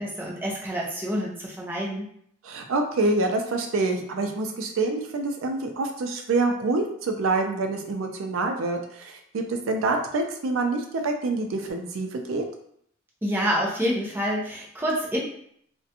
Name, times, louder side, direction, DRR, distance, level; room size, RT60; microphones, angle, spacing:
voice 1, 0.0-2.1 13.2-15.2, equal, 10° right, -3 dB, 0.4 m, -27 dB
voice 2, 2.4-12.4, right 3 dB, 85° right, 4 dB, 0.4 m, -26 dB
2.5 x 2.1 x 2.7 m, 0.67 s
head